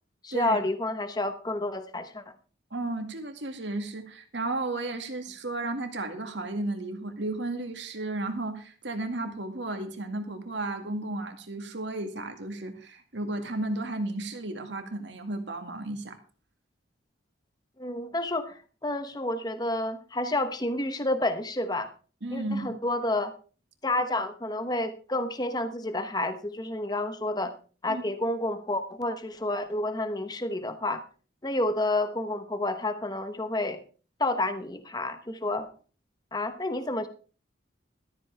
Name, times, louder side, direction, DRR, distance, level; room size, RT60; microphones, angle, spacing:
voice 1, 0.2-2.3 17.8-21.9 22.3-23.3 23.8-27.5 27.8-31.0 31.4-33.8 34.2-35.7 36.3-37.1, left 2 dB, 20° left, 9 dB, 1.0 m, -30 dB
voice 2, 2.7-16.2 22.2-22.7 27.9-28.1, right 2 dB, 70° right, 6 dB, 2.1 m, -33 dB
13.5 x 13.5 x 3.4 m, 0.38 s
head